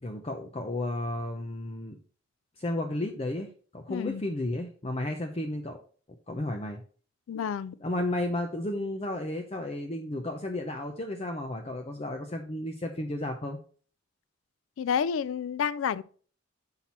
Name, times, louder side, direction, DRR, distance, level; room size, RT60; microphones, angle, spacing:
voice 1, 0.0-2.0 2.6-5.8 6.3-6.8 7.8-13.6, left 1 dB, 30° left, 0.6 m, -33 dB
voice 2, 3.9-4.2 7.3-7.8 14.8-16.0, left 7 dB, 80° left, 0.3 m, -29 dB
5.9 x 5.7 x 4.2 m
head